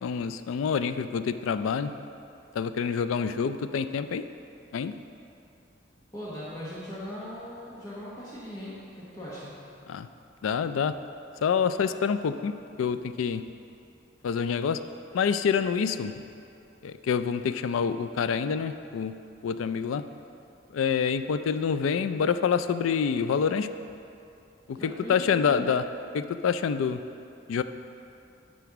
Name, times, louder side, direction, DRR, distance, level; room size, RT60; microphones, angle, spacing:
voice 1, 0.0-1.9 2.5-4.3 4.7-4.9 9.9-10.1 10.4-11.0 11.4-13.4 14.2-14.8 15.1-16.1 16.8-19.1 19.4-20.0 20.7-23.7 24.7-25.8 26.1-27.0 27.5-27.6, left 6 dB, 90° left, 11 dB, 0.3 m, -27 dB
voice 2, 6.1-9.5 24.8-25.7, equal, 20° left, -8 dB, 1.0 m, -39 dB
9.4 x 4.1 x 5.9 m, 2.7 s
head